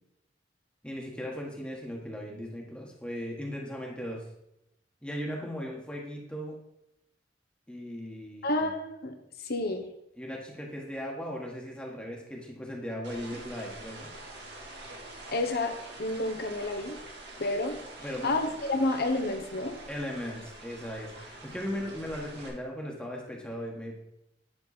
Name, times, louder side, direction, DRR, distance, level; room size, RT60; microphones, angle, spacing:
voice 1, 0.8-4.2 5.0-6.5 7.7-8.7 10.2-14.1 18.0-18.3 19.9-24.0, equal, 5° left, -1 dB, 1.4 m, -37 dB
voice 2, 8.4-9.1 9.4-9.9 15.3-16.9 17.4-17.7 18.2-19.7, left 2 dB, 60° left, 5 dB, 1.2 m, -29 dB
sound 1, 13.0-22.5, right 2 dB, 70° right, 2.2 m, -46 dB
10.0 x 5.8 x 4.1 m, 0.82 s
head